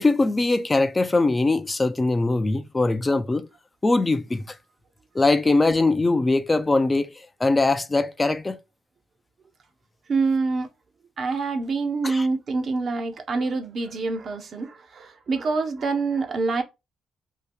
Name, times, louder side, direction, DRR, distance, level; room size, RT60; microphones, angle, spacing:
voice 1, 0.0-3.5 3.8-4.6 5.1-8.6 12.0-12.3, left 2 dB, 20° left, 0.3 m, -21 dB
voice 2, 10.1-10.7 11.2-16.6, right 4 dB, 50° right, 0.6 m, -26 dB
2.7 x 2.2 x 3.4 m
cardioid pair, 95°, 0 cm